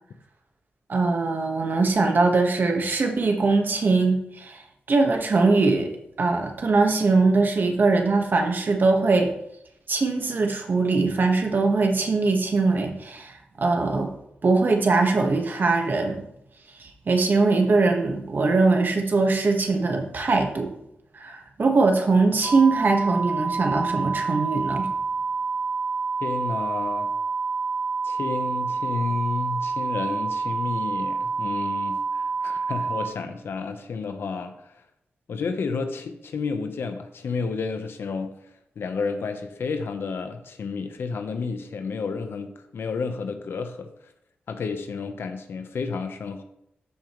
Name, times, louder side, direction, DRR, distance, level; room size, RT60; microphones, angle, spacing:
voice 1, 0.9-4.6 4.9-5.9 6.2-9.3 9.9-14.1 14.4-16.2 16.8-20.7 21.1-24.9, right 3 dB, 55° right, 3 dB, 1.4 m, -21 dB
sound 1, 22.4-33.1, right 4 dB, 5° right, 2.3 m, -28 dB
voice 2, 26.2-27.1 28.0-34.7 35.3-38.3 38.8-43.9 44.5-46.4, left 4 dB, 80° left, 8 dB, 0.9 m, -31 dB
13.5 x 5.1 x 3.1 m, 0.77 s
cardioid pair, 70°, 4 cm